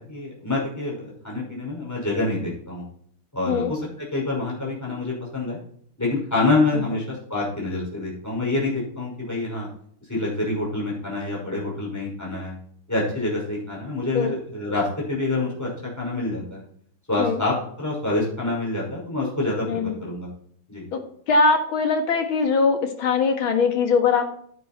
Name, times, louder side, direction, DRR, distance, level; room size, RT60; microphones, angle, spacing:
voice 1, 0.0-2.8 3.3-5.6 6.0-9.7 10.1-12.6 12.9-15.7 16.0-16.6 17.1-20.3 20.7-20.8, left 2 dB, 5° left, -4 dB, 5.7 m, -26 dB
voice 2, 19.7-20.0 20.9-21.0 21.3-24.3, left 4 dB, 70° left, 6 dB, 2.4 m, -21 dB
10.0 x 9.3 x 4.4 m, 0.63 s
omnidirectional pair, 2.4 m